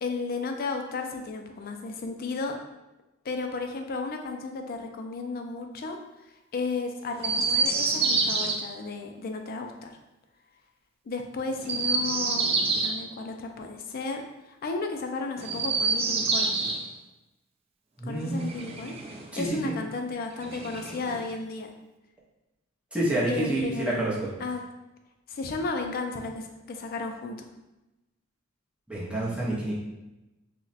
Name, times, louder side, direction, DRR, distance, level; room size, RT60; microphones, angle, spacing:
voice 1, 0.0-2.6 3.2-6.0 6.5-9.9 11.1-14.2 14.5-16.5 18.1-19.0 19.4-21.7 23.3-24.1 24.4-24.6 25.3-27.5, left 3 dB, 45° left, 4 dB, 0.4 m, -33 dB
Chirp tweet, 7.2-8.6 11.6-13.0 15.4-16.8 18.2-19.3 20.4-21.3, right 4 dB, 30° right, 0.3 m, -27 dB
voice 2, 18.0-18.6 19.3-19.8 22.9-24.3 28.9-29.7, right 1 dB, 5° right, -7 dB, 0.7 m, -28 dB
2.3 x 2.1 x 3.9 m, 0.99 s
head